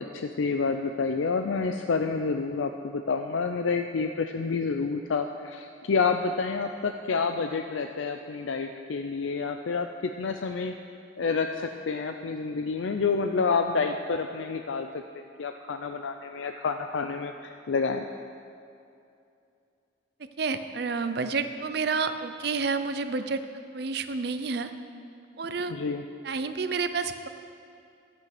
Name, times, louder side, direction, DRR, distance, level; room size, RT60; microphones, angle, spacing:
voice 1, 0.0-10.7 11.2-18.1 25.7-26.0, left 4 dB, 80° left, 6 dB, 0.5 m, -29 dB
voice 2, 20.4-23.4 23.7-24.7 25.4-25.7 26.2-27.3, right 4 dB, 55° right, 10 dB, 0.6 m, -29 dB
12.0 x 8.3 x 6.0 m, 2.6 s
head